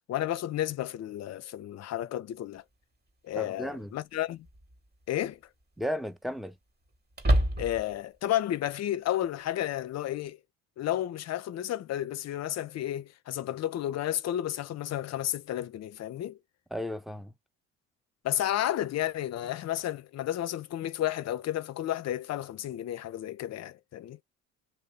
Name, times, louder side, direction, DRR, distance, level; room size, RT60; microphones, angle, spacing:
voice 1, 0.1-2.6 3.2-4.5 5.1-5.4 7.6-10.4 10.8-16.4 18.2-24.2, left 12 dB, 50° left, 0.5 m, -32 dB
sound 1, 2.5-2.6 4.4-4.9 5.2-5.3 7.1-8.0, right 1 dB, 30° right, 1.3 m, -26 dB
voice 2, 3.4-3.9 5.8-6.5 16.7-17.3, equal, ahead, 0.5 m, -34 dB
2.6 x 2.0 x 3.5 m
hypercardioid pair, 65°, 35 cm